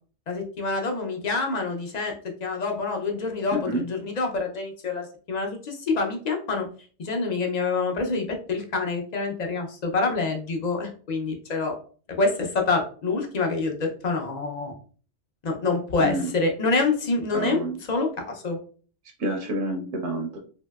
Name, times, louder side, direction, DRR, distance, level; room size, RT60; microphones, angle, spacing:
voice 1, 0.3-2.1 2.4-6.7 7.0-11.8 12.2-14.7 15.4-18.6, left 3 dB, 50° left, 2 dB, 0.5 m, -26 dB
voice 2, 3.5-3.8 16.0-16.3 17.3-17.8 19.2-20.4, right 1 dB, 75° right, 3 dB, 1.0 m, -28 dB
3.0 x 2.7 x 2.2 m, 0.41 s
omnidirectional pair, 1.2 m